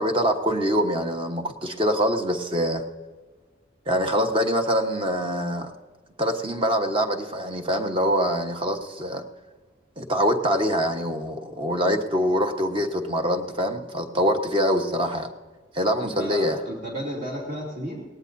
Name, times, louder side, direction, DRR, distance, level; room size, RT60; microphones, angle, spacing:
voice 1, 0.0-2.8 3.9-5.7 6.2-9.2 10.0-15.3 15.7-16.6, equal, 30° right, 5 dB, 1.2 m, -24 dB
voice 2, 16.0-18.0, equal, 50° right, -3 dB, 3.0 m, -33 dB
18.5 x 18.0 x 2.7 m, 1.3 s
head